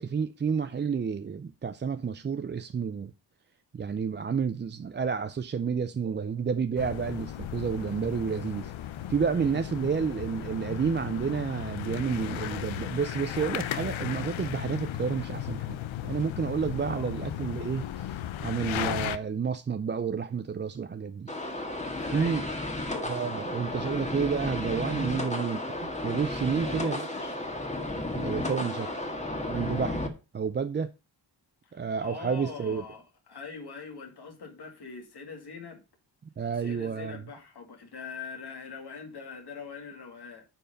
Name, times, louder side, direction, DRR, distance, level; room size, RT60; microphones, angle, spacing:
voice 1, 0.0-3.1 3.7-8.7 9.1-21.3 22.1-22.4 23.0-27.1 28.2-28.9 29.5-30.9 31.7-32.8 36.4-37.2, right 6 dB, 25° right, 0.4 m, -30 dB
sound 1, 6.8-19.2, left 11 dB, 75° left, 0.7 m, -35 dB
voice 2, 9.3-9.6 16.9-17.2 21.9-22.7 26.5-27.3 28.4-29.0 31.6-35.8 36.6-40.5, left 5 dB, 55° left, 2.4 m, -43 dB
sound 2, 21.3-30.1, left 1 dB, 15° left, 1.7 m, -33 dB
8.9 x 4.7 x 5.3 m
cardioid pair, 100°, 47 cm